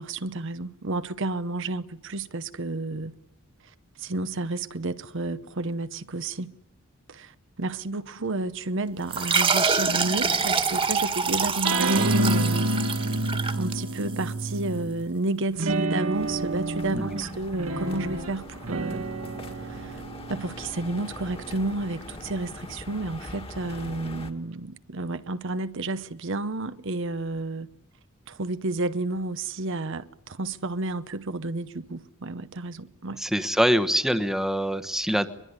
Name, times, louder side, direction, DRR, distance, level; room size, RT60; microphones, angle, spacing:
voice 1, 0.0-3.1 4.0-6.5 7.1-12.7 13.6-19.0 19.6-20.0 20.3-27.7 28.3-33.2, right 2 dB, 60° right, 0.9 m, -31 dB
sound 1, 9.1-14.3, right 5 dB, 25° right, 1.8 m, -25 dB
sound 2, 11.6-15.0 15.5-22.3, right 2 dB, 90° right, 2.1 m, -29 dB
sound 3, 16.1-24.3, left 2 dB, 25° left, 2.0 m, -42 dB
voice 2, 16.9-17.3 33.2-35.3, equal, ahead, 1.2 m, -24 dB
23.0 x 22.0 x 9.7 m
head